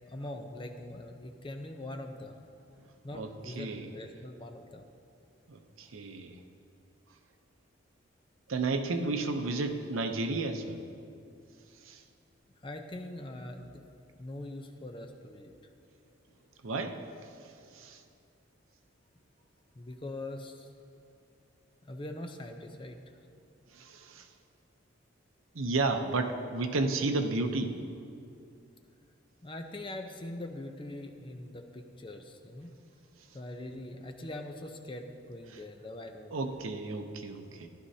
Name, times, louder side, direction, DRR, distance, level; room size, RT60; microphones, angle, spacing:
voice 1, 0.1-2.3 3.0-4.8 12.6-13.8 14.2-15.5 19.8-20.7 21.8-23.0 29.4-32.8 33.3-36.7, left 1 dB, 25° left, 5 dB, 0.6 m, -42 dB
voice 2, 3.6-3.9 5.5-6.3 8.5-10.8 11.9-12.0 16.6-17.0 17.7-18.0 23.7-24.2 25.5-27.7 36.3-37.7, right 3 dB, 80° right, 6 dB, 0.7 m, -32 dB
14.5 x 11.5 x 2.8 m, 2.5 s
head